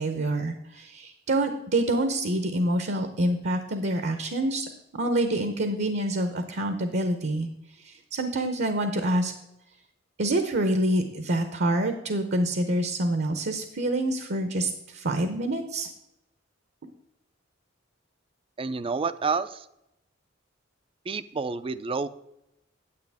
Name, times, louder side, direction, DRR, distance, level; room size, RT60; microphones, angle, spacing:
voice 1, 0.0-7.5 7.8-9.3 10.2-15.9, right 1 dB, 60° right, 8 dB, 0.8 m, -27 dB
voice 2, 18.6-19.7 21.1-22.1, right 4 dB, 25° right, 14 dB, 0.4 m, -29 dB
9.6 x 8.5 x 3.5 m, 0.85 s
head